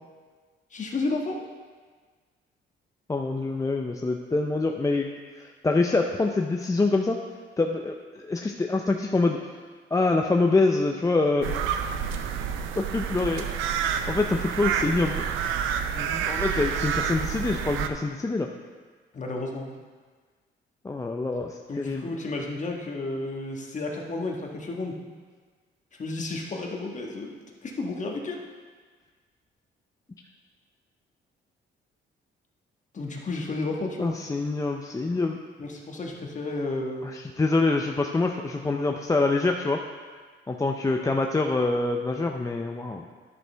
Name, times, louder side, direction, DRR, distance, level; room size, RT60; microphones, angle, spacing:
voice 1, 0.7-1.4 19.1-19.7 21.7-25.0 26.0-28.4 32.9-34.1 35.6-37.1, left 2 dB, 40° left, 0 dB, 1.4 m, -32 dB
voice 2, 3.1-5.1 5.3-7.2 7.6-9.4 9.9-11.8 12.8-13.4 14.1-15.2 15.9-18.5 20.8-22.1 34.0-35.4 37.0-39.8 40.5-43.0, left 3 dB, 15° left, 2 dB, 0.5 m, -25 dB
sound 1, 11.4-17.9, right 8 dB, 85° right, 0.6 m, -29 dB
11.0 x 6.5 x 3.4 m, 1.5 s
cardioid pair, 90°, 20 cm